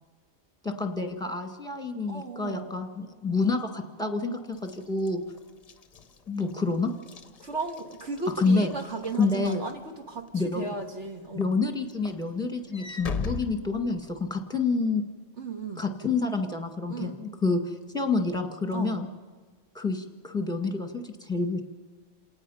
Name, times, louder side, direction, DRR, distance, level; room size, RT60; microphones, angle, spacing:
voice 1, 0.6-5.2 6.3-6.9 8.4-8.7 9.2-9.6 10.3-10.7 11.3-15.0 15.8-19.1 19.7-21.6, left 3 dB, 5° left, 4 dB, 1.7 m, -28 dB
voice 2, 2.1-2.8 7.4-10.3 10.6-11.5 15.4-15.9 16.9-17.4 18.7-19.0, right 4 dB, 60° right, 3 dB, 1.8 m, -35 dB
Walk footsteps / Slam, 4.6-10.3 10.8-11.1 11.4-14.4, left 5 dB, 35° left, 0.7 m, -40 dB
28.0 x 18.5 x 5.7 m, 1.4 s
omnidirectional pair, 1.4 m